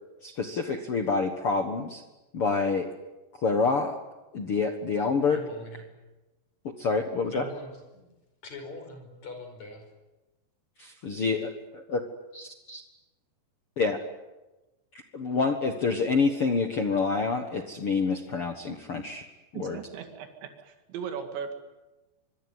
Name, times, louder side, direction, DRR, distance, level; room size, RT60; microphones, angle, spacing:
voice 1, 0.2-2.0 2.3-2.9 3.4-4.0 4.3-5.4 6.6-7.5 10.8-12.0 12.3-12.8 13.8-14.0 15.1-19.3 19.5-19.8, left 4 dB, 70° left, 6 dB, 1.3 m, -27 dB
voice 2, 5.3-5.9 7.3-8.0 8.4-9.9, left 2 dB, 40° left, 5 dB, 6.2 m, -42 dB
voice 3, 19.5-21.5, right 7 dB, 90° right, 5 dB, 4.5 m, -38 dB
25.5 x 23.5 x 9.6 m, 1.1 s
omnidirectional pair, 5.0 m